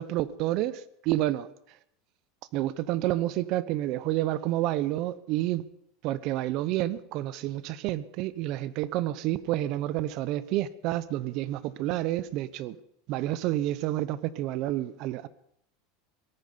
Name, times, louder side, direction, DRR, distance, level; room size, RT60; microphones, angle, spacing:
voice 1, 0.0-1.5 2.5-5.6 6.0-12.8 13.1-15.3, right 14 dB, 45° right, 17 dB, 0.8 m, -29 dB
18.5 x 13.5 x 5.6 m, 0.74 s
supercardioid pair, 160°, 0 cm